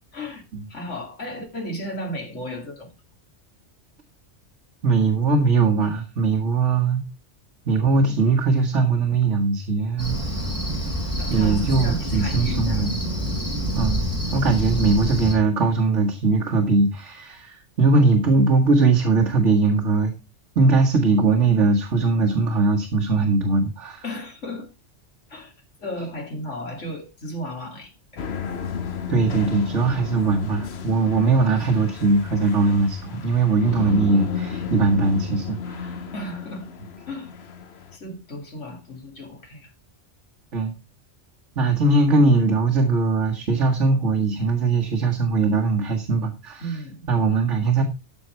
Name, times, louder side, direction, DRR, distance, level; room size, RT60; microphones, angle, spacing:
voice 1, 0.0-0.4 0.7-2.9 10.4-10.9 11.2-12.9 24.0-24.7 25.3-25.5 25.8-28.3 31.4-31.8 36.1-36.7 37.1-37.3 37.9-39.7 46.6-47.1, equal, 85° left, 2.9 m, -35 dB
voice 2, 4.8-7.0 7.7-10.2 11.3-13.0 13.8-14.1 14.3-20.1 20.6-24.0 29.1-35.9 40.5-40.7 41.6-46.6 47.1-47.8, right 3 dB, 85° right, 1.9 m, -20 dB
Cricket, 10.0-15.4, equal, 10° right, 4.1 m, -27 dB
sound 1, 28.2-38.0, left 6 dB, 60° left, 1.2 m, -33 dB
13.5 x 5.6 x 4.5 m
omnidirectional pair, 1.2 m